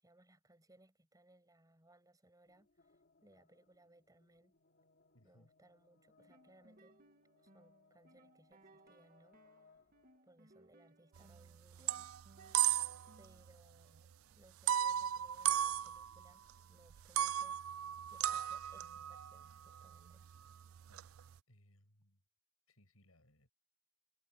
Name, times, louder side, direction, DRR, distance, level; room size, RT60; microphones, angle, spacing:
voice 1, 0.0-2.7 3.2-4.6 5.2-7.0 7.4-9.4 10.2-12.1 13.2-17.6 18.1-20.3, right 1 dB, 15° right, 7.4 m, -66 dB
sound 1, 2.5-10.2, left 4 dB, 50° left, 3.2 m, -71 dB
voice 2, 5.1-5.5 20.9-21.1 21.5-22.2 22.7-23.5, left 1 dB, 85° left, 7.9 m, -68 dB
sound 2, 6.1-13.5, right 2 dB, 45° right, 2.4 m, -66 dB
sound 3, 11.2-11.5 11.7-13.2 13.5-13.6 14.7-16.5 16.9-21.3, right 11 dB, 80° right, 0.4 m, -36 dB
head